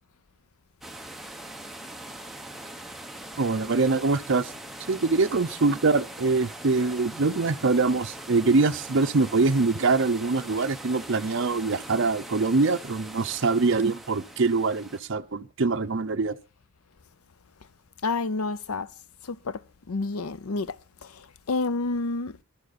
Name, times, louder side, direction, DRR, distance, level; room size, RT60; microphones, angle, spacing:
sound 1, 0.8-15.0, right 1 dB, ahead, 0.8 m, -42 dB
voice 1, 3.4-4.5 4.9-16.3, right 3 dB, 55° right, 0.6 m, -24 dB
voice 2, 18.0-18.9 19.2-22.4, left 3 dB, 85° left, 0.7 m, -30 dB
12.0 x 11.5 x 4.1 m
head